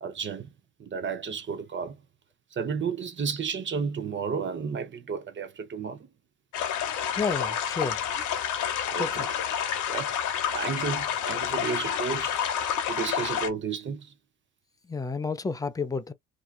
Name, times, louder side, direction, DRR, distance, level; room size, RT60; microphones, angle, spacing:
voice 1, 0.0-0.5 0.8-2.0 2.5-6.1 8.9-9.3 9.9-10.1 10.5-12.4 12.9-14.1, right 6 dB, 40° right, 0.7 m, -32 dB
sound 1, 6.5-13.5, left 9 dB, 80° left, 0.8 m, -29 dB
voice 2, 7.2-8.0 9.0-9.2 14.9-16.1, left 4 dB, 10° left, 0.4 m, -30 dB
2.7 x 2.3 x 2.3 m
cardioid pair, 90°, 30 cm